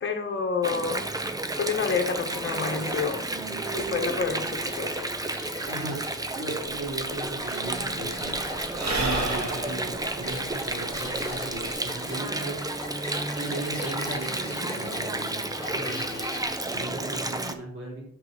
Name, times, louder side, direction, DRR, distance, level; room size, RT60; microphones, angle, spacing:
voice 1, 0.0-1.0 1.6-3.2 3.7-5.1 9.1-9.5, left 5 dB, 40° left, 4 dB, 1.4 m, -29 dB
Water, 0.6-17.5, right 2 dB, 10° right, 0.7 m, -31 dB
sound 1, 1.6-16.4, left 3 dB, 15° left, 2.0 m, -43 dB
voice 2, 5.6-8.5 9.0-12.6 13.4-15.4 15.7-16.2 16.7-18.0, right 2 dB, 40° right, -5 dB, 3.5 m, -37 dB
Sigh / Breathing, 6.7-6.8 7.0-11.7, right 2 dB, 60° right, 2.7 m, -33 dB
5.8 x 5.6 x 5.3 m, 0.67 s
cardioid pair, 95°, 30 cm